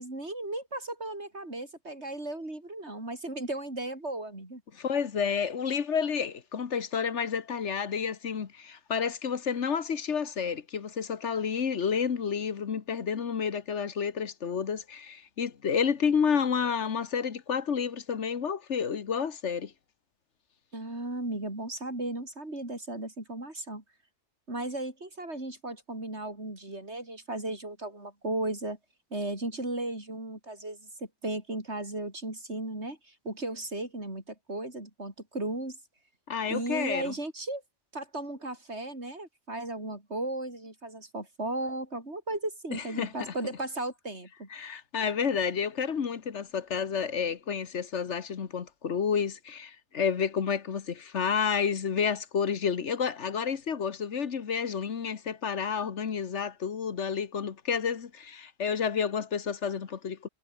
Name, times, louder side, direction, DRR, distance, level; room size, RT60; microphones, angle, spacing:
voice 1, 0.0-4.6 20.7-23.8 24.5-28.8 29.1-35.8 36.5-37.6 37.9-44.5, right 2 dB, 70° right, 6.2 m, -35 dB
voice 2, 4.7-19.7 36.3-37.1 42.7-43.3 44.5-60.3, left 6 dB, 80° left, 1.6 m, -30 dB
omnidirectional pair, 1.2 m